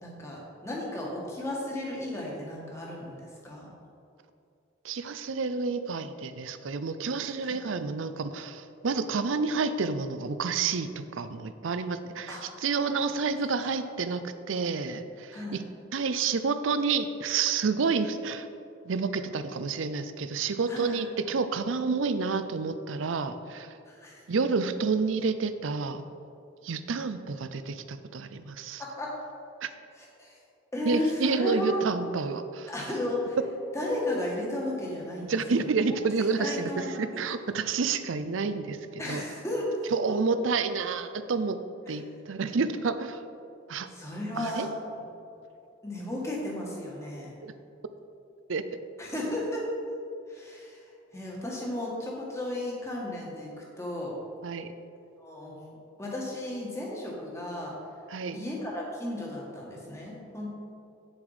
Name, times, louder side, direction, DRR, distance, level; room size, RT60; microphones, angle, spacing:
voice 1, 0.0-3.7 7.4-7.6 12.3-12.4 13.6-13.7 15.3-15.6 20.7-21.0 23.9-24.2 28.8-29.1 30.0-30.4 30.7-31.9 32.7-33.4 33.7-35.7 36.4-37.0 39.0-39.7 41.9-42.0 43.9-44.7 45.8-47.3 49.0-49.6 50.3-50.8 51.1-53.5 53.8-54.1 55.2-55.5 56.0-57.7 58.3-60.5, left 1 dB, 15° left, -3 dB, 1.9 m, -34 dB
voice 2, 4.8-15.6 15.9-18.5 18.8-23.8 24.3-26.1 26.6-28.8 29.6-29.7 30.8-32.7 35.2-39.2 39.9-41.6 41.9-43.2 43.7-43.9 44.4-44.7 47.4-47.5 48.5-48.8 54.4-54.7 58.1-58.4, right 4 dB, 75° right, 11 dB, 0.5 m, -29 dB
9.1 x 7.2 x 5.0 m, 2.6 s
head